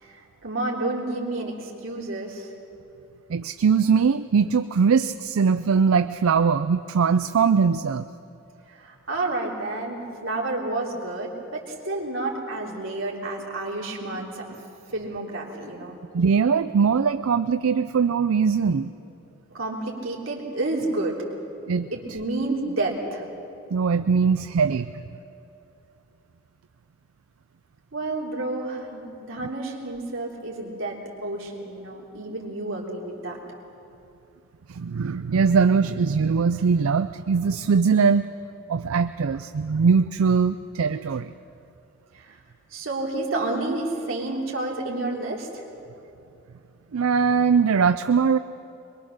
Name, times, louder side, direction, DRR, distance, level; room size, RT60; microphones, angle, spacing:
voice 1, 0.0-2.5 8.7-14.5 14.9-16.0 19.5-21.2 21.9-23.2 27.9-33.4 42.1-42.4 42.7-45.6, right 2 dB, 70° right, -2 dB, 3.2 m, -30 dB
voice 2, 3.3-8.0 16.1-18.9 21.7-21.9 23.7-25.0 34.7-38.2 38.7-41.3 46.9-48.4, right 5 dB, 90° right, 11 dB, 0.4 m, -21 dB
22.5 x 22.0 x 6.5 m, 2.7 s
head